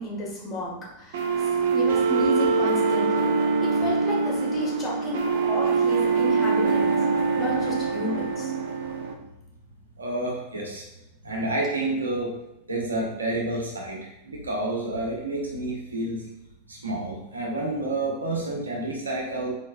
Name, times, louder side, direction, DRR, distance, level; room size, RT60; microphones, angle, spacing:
voice 1, 0.0-3.3 3.6-7.0 7.4-8.5, left 1 dB, 20° left, -4 dB, 1.4 m, -32 dB
sound 1, 1.1-9.1, right 4 dB, 55° right, 0.5 m, -24 dB
voice 2, 10.0-10.8 11.2-12.3 12.7-16.2 16.7-19.5, right 2 dB, 75° right, -2 dB, 1.0 m, -29 dB
4.4 x 4.3 x 2.3 m, 0.89 s
figure-of-eight pair, 90°, 0 cm